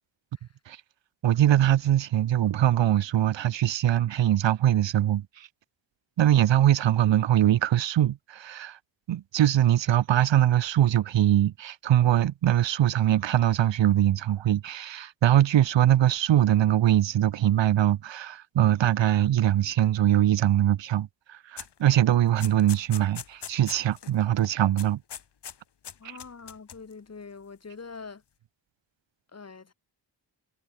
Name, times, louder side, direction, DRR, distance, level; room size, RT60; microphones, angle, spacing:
voice 1, 1.2-5.5 6.2-8.8 9.1-25.0 26.0-26.2, right 12 dB, 75° right, 0.5 m, -22 dB
sound 1, 21.6-21.8 22.1-24.1 24.4-24.5 24.8-25.6 25.8-26.9, left 8 dB, 65° left, 1.0 m, -41 dB
voice 2, 26.0-28.2 29.3-29.7, left 4 dB, 35° left, 0.9 m, -44 dB
wide cardioid pair, 105°, 45 cm